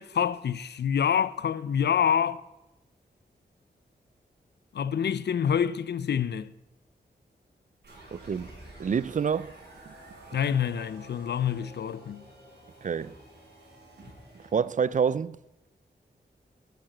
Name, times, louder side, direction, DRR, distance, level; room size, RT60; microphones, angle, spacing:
voice 1, 0.0-2.4 4.7-6.5 10.3-12.2, left 8 dB, 70° left, 0.5 m, -27 dB
sound 1, 7.8-14.6, right 1 dB, 70° right, 4.8 m, -50 dB
voice 2, 8.1-8.5 8.8-9.5 12.8-13.1 14.5-15.4, right 6 dB, 45° right, 0.4 m, -27 dB
8.7 x 7.7 x 7.7 m
cardioid pair, 70°, 18 cm